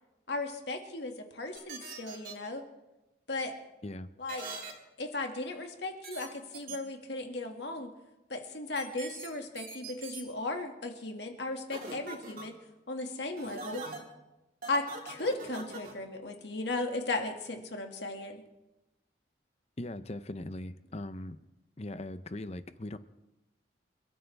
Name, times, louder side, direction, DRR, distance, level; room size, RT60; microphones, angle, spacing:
voice 1, 0.3-2.6 3.3-3.5 4.2-4.4 5.0-7.9 8.3-12.5 12.9-13.8 14.7-18.4, left 2 dB, 70° left, 3 dB, 2.0 m, -36 dB
sound 1, 1.5-2.3 4.3-4.7 6.0-6.3 6.5-6.8 8.7-9.3 9.5-10.2 11.7-12.4 13.4-14.0 14.6-15.9, right 4 dB, 50° right, 3.5 m, -42 dB
voice 2, 19.8-21.4 21.8-23.0, left 1 dB, 35° left, 12 dB, 0.7 m, -40 dB
29.0 x 13.0 x 3.5 m, 1.0 s
head